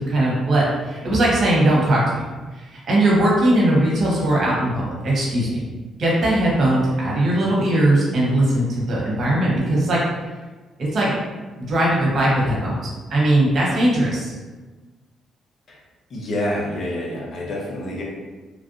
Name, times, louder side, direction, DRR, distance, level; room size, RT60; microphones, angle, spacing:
voice 1, 0.0-2.0 2.5-5.6 6.0-10.1 10.8-11.1 11.6-12.7 13.1-14.3, right 1 dB, 55° right, -5 dB, 1.0 m, -19 dB
voice 2, 16.1-18.0, left 1 dB, 55° left, -3 dB, 0.8 m, -27 dB
3.1 x 2.5 x 2.6 m, 1.3 s
cardioid pair, 90°, 0 cm